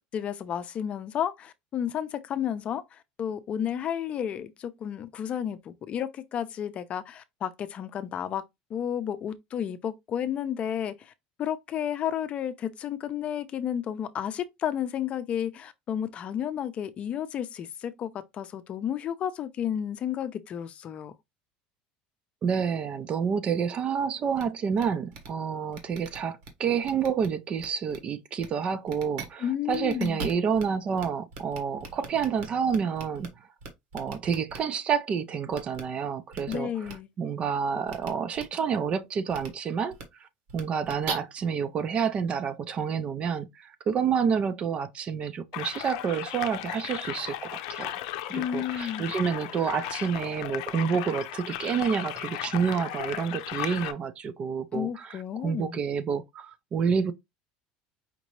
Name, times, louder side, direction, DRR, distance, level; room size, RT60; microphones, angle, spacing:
voice 1, 0.1-8.4 8.7-11.1 11.4-21.1 29.4-30.3 36.5-37.1 48.3-49.0 54.7-55.8, left 9 dB, 35° left, 0.6 m, -32 dB
voice 2, 22.4-33.3 33.9-36.9 37.2-48.0 48.3-57.1, right 6 dB, 35° right, 0.5 m, -29 dB
sound 1, 24.4-24.5 24.8-24.9 25.1-25.3 25.7-26.5 26.8-27.3 27.6-28.0 28.4-28.5 28.9-29.3 29.7-30.6 31.0-31.1 31.3-33.3 33.6-34.6 35.5-35.8 36.3-36.5 36.8-36.9 37.9-38.1 38.3-38.4 39.3-39.5 39.9-40.0 40.5-41.1, right 5 dB, 75° right, 1.4 m, -39 dB
sound 2, 45.5-53.9, left 14 dB, 80° left, 0.6 m, -36 dB
5.1 x 2.7 x 3.1 m
cardioid pair, 140°, 3 cm